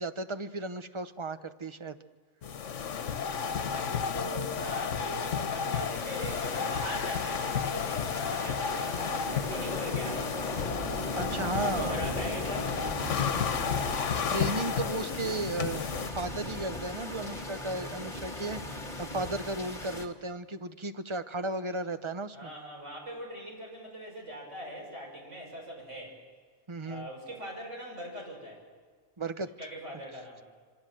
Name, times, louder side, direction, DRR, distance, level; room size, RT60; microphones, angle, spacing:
voice 1, 0.0-2.0 11.1-12.0 14.3-18.6 19.0-22.5 26.7-27.1 29.2-29.5, right 2 dB, 30° right, 11 dB, 0.8 m, -35 dB
sound 1, 2.4-16.1, left 7 dB, 90° left, 1.3 m, -32 dB
voice 2, 3.3-10.4 11.5-13.1 22.3-26.2 26.8-28.6 29.6-30.4, equal, 80° right, 0 dB, 6.5 m, -41 dB
sound 2, 5.4-20.1, left 1 dB, 45° left, 2.1 m, -38 dB
26.5 x 25.5 x 7.7 m, 1.5 s
omnidirectional pair, 1.2 m